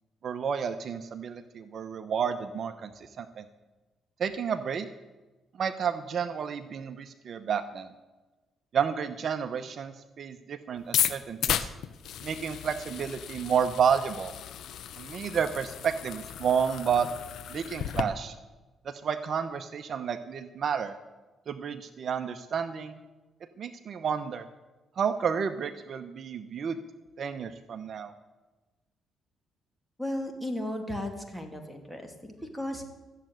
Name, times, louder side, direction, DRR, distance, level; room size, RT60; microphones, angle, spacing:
voice 1, 0.2-3.4 4.2-4.9 5.6-7.9 8.7-11.7 12.2-14.3 15.0-17.1 17.5-18.3 18.8-20.9 21.5-23.0 23.6-24.4 25.0-26.8 27.2-28.1, right 7 dB, 55° right, 9 dB, 0.9 m, -31 dB
sound 1, 10.8-18.0, left 10 dB, 75° left, 0.7 m, -34 dB
voice 2, 30.0-32.9, left 1 dB, 5° left, 4 dB, 2.5 m, -35 dB
14.0 x 7.6 x 9.2 m, 1.2 s
cardioid pair, 90°, 0 cm